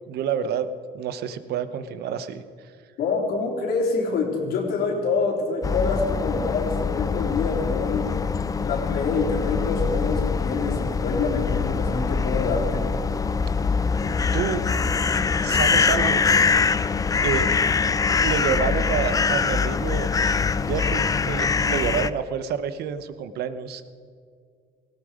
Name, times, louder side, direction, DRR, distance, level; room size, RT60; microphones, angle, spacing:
voice 1, 0.1-0.7 0.9-2.4 14.3-14.6 15.4-16.2 17.2-17.5 18.2-20.3 20.6-23.9, right 8 dB, 70° right, 11 dB, 1.0 m, -28 dB
voice 2, 3.0-8.1 8.6-12.9, left 4 dB, 70° left, 0 dB, 3.7 m, -26 dB
sound 1, 5.6-22.1, left 5 dB, 20° left, 0.5 m, -23 dB
18.0 x 16.0 x 5.0 m, 2.1 s
cardioid pair, 110°, 17 cm